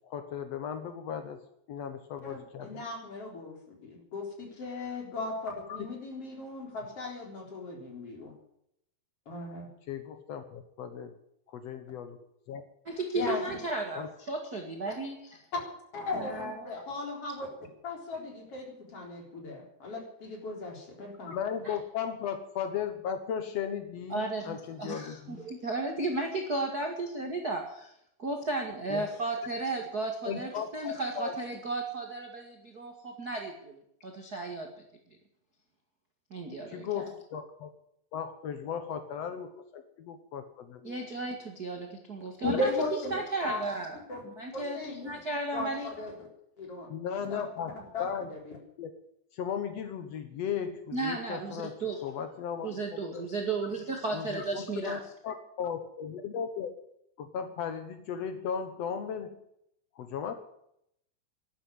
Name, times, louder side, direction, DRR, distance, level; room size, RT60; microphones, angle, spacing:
voice 1, 0.0-1.4 1.7-2.8 5.8-5.9 9.9-11.1 11.5-12.2 12.5-12.6 13.9-14.1 21.3-25.4 28.9-29.1 30.2-31.3 36.7-37.7 38.1-41.0 44.6-44.7 46.9-47.7 48.0-48.3 48.8-48.9 49.3-53.3 54.1-56.7 57.2-59.4 59.9-60.3, left 8 dB, 85° left, 8 dB, 1.4 m, -36 dB
voice 2, 2.2-8.3 9.3-9.7 13.1-13.4 15.9-17.5 17.8-21.4 42.4-43.1 43.4-43.6 44.1-44.2 44.5-45.1 45.5-46.3 46.6-46.9 47.2-47.4 47.9-48.6, left 2 dB, 35° left, 1 dB, 4.6 m, -37 dB
voice 3, 12.8-15.4 16.1-16.7 21.6-21.8 24.1-27.9 28.2-34.7 36.3-37.1 40.8-42.7 43.1-44.0 44.2-45.9 50.9-52.0 52.6-55.0, right 3 dB, 40° right, 2 dB, 1.4 m, -34 dB
12.5 x 12.0 x 9.6 m, 0.74 s
omnidirectional pair, 4.8 m